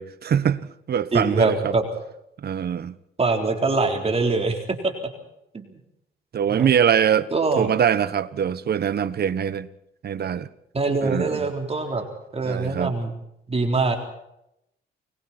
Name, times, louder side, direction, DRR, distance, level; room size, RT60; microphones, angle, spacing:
voice 1, 0.0-1.7 2.4-2.9 6.3-7.3 7.6-9.7 10.0-10.5 11.0-11.5 12.4-12.9, right 8 dB, 55° right, 1.3 m, -23 dB
voice 2, 1.1-1.8 3.2-4.9 5.5-5.8 6.5-6.7 7.3-7.7 10.7-12.0 12.3-13.1 13.5-14.0, right 3 dB, 30° right, 3.9 m, -23 dB
29.5 x 21.5 x 4.4 m
cardioid pair, 90°, 20 cm